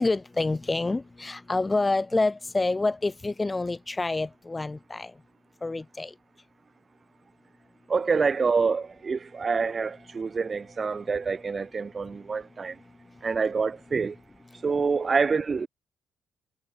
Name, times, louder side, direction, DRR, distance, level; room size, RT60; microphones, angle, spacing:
voice 1, 0.0-5.1 5.6-6.1, left 3 dB, 20° left, 0.7 m, -27 dB
voice 2, 7.9-12.7 13.2-14.2 14.6-15.7, right 5 dB, 35° right, 0.8 m, -26 dB
cardioid pair, 90°, 0 cm